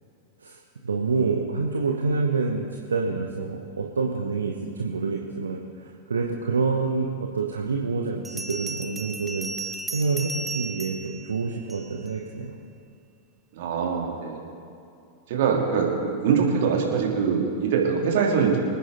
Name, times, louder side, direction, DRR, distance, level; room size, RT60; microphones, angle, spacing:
voice 1, 0.4-12.6, right 4 dB, 70° right, 1 dB, 1.0 m, -27 dB
Bell, 8.2-12.1, right 3 dB, 5° right, 1.1 m, -35 dB
voice 2, 13.6-14.5 15.3-18.6, right 6 dB, 55° right, 0 dB, 2.7 m, -23 dB
25.0 x 9.9 x 4.0 m, 2.6 s
figure-of-eight pair, 90°, 0 cm